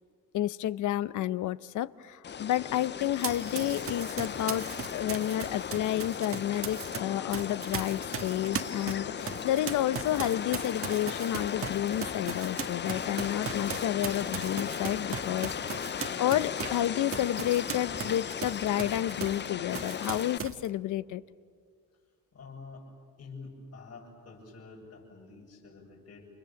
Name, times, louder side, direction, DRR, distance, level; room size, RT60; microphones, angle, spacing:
voice 1, 0.3-4.7 4.9-15.9 16.2-21.2, left 12 dB, 80° left, 17 dB, 0.8 m, -30 dB
sound 1, 2.2-20.4, left 7 dB, 35° left, 0.7 m, -37 dB
Run, 3.2-7.0 7.3-19.5 19.7-20.7, right 7 dB, 45° right, 1.5 m, -38 dB
sound 2, 16.4-18.3 18.6-18.9, right 10 dB, 70° right, 1.2 m, -52 dB
voice 2, 22.3-22.9 23.2-26.3, left 4 dB, 55° left, -5 dB, 7.1 m, -48 dB
29.0 x 27.0 x 7.2 m, 2.1 s
cardioid pair, 90°, 30 cm